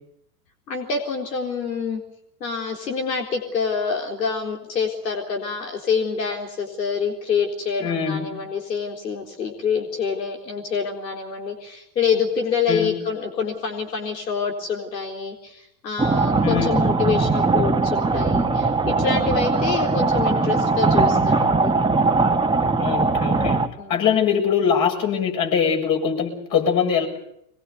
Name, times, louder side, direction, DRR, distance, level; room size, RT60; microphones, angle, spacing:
voice 1, 0.7-2.0 2.4-21.7 23.8-24.0, left 5 dB, 85° left, 2 dB, 4.0 m, -26 dB
voice 2, 7.8-8.3 12.7-12.9 16.4-16.8 22.8-27.1, left 7 dB, 40° left, 3 dB, 7.3 m, -22 dB
sound 1, 16.0-23.7, right 3 dB, 10° right, 1.7 m, -20 dB
24.0 x 21.0 x 8.4 m, 0.75 s
hypercardioid pair, 100°, 48 cm